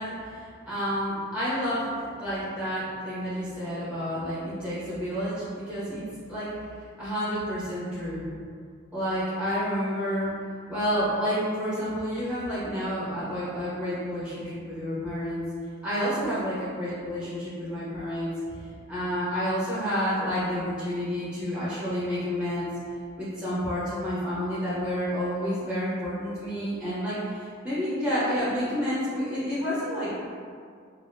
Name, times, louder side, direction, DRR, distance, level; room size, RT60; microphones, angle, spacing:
voice 1, 0.0-6.0 6.3-6.5 7.0-8.2 8.9-10.3 10.7-15.4 15.8-22.7 23.2-30.3, equal, 5° right, -11 dB, 0.6 m, -30 dB
2.7 x 2.0 x 3.3 m, 2.2 s
head